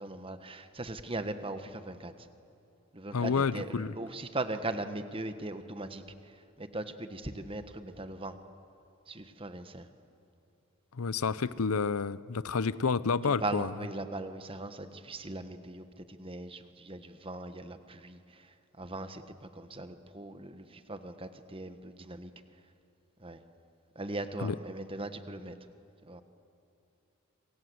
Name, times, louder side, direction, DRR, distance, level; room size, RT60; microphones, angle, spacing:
voice 1, 0.0-2.1 2.9-6.0 6.6-8.3 9.1-9.8 13.2-18.2 18.8-19.2 19.6-22.3 23.2-23.4 23.9-25.5 26.1-26.2, right 2 dB, 25° right, 9 dB, 1.3 m, -39 dB
voice 2, 3.1-3.9 11.0-13.7 24.4-24.6, left 5 dB, 75° left, 17 dB, 0.7 m, -29 dB
27.5 x 25.5 x 7.9 m, 2.8 s
head